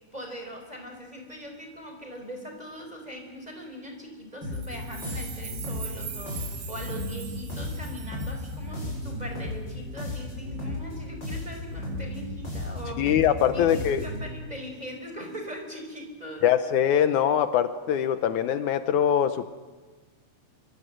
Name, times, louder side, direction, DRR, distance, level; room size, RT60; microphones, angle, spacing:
voice 1, 0.1-13.1 13.4-16.4, equal, 10° right, 3 dB, 4.7 m, -41 dB
sound 1, 4.4-14.3, left 1 dB, 35° left, 8.5 m, -35 dB
sound 2, 4.5-9.0, right 8 dB, 60° right, 3.1 m, -42 dB
voice 2, 13.0-14.0 16.4-19.5, left 9 dB, 75° left, 10 dB, 2.2 m, -23 dB
25.5 x 24.5 x 7.8 m, 1.3 s
omnidirectional pair, 3.6 m